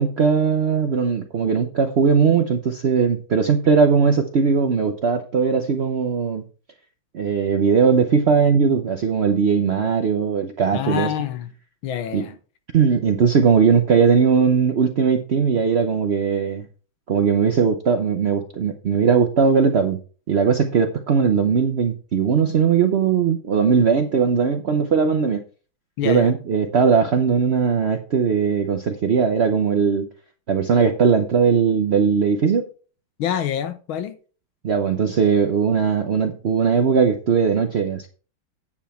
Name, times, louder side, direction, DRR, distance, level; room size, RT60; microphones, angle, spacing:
voice 1, 0.0-6.4 7.1-11.1 12.1-12.2 12.7-16.6 17.1-20.0 20.3-25.4 26.0-30.1 30.5-32.7 34.6-38.1, right 6 dB, 65° right, 0.6 m, -19 dB
voice 2, 10.7-11.5 11.8-12.3 26.0-26.3 33.2-34.2, left 9 dB, 85° left, 1.8 m, -26 dB
9.8 x 7.1 x 4.2 m
omnidirectional pair, 2.2 m